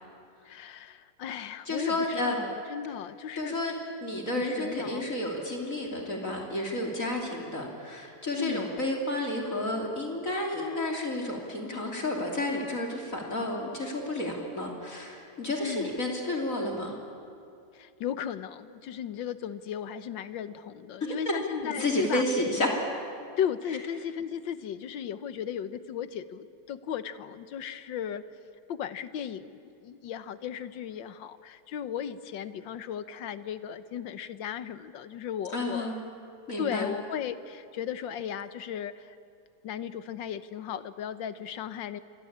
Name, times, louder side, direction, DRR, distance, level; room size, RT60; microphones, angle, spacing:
voice 1, 0.5-3.5 4.3-5.1 8.3-8.7 15.6-15.9 17.7-22.2 23.4-28.2 28.7-35.9 36.6-39.2 39.6-42.0, left 9 dB, 80° left, 13 dB, 1.7 m, -36 dB
voice 2, 1.6-2.4 3.4-3.8 4.0-17.0 21.6-22.7 35.5-36.0 36.5-36.9, left 1 dB, 45° left, 1 dB, 3.2 m, -31 dB
28.0 x 23.5 x 8.7 m, 2.6 s
omnidirectional pair, 2.0 m